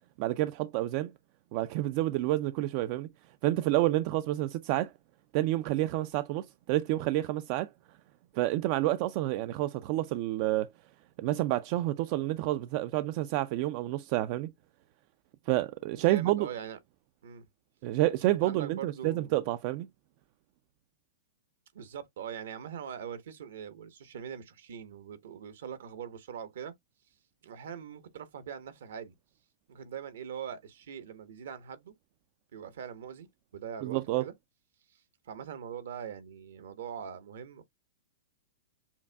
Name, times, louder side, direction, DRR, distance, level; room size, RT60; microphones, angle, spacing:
voice 1, 0.2-1.1 1.5-3.1 3.4-4.9 5.3-7.7 8.3-10.7 11.2-14.5 15.5-16.5 17.8-19.9 33.8-34.2, right 16 dB, 45° right, 0.4 m, -29 dB
voice 2, 16.1-16.8 17.2-17.5 18.2-19.5 21.7-26.7 27.4-29.1 29.7-31.9 32.5-34.3 34.9-37.6, right 8 dB, 70° right, 1.1 m, -42 dB
7.1 x 2.5 x 2.3 m
hypercardioid pair, 125°, 0 cm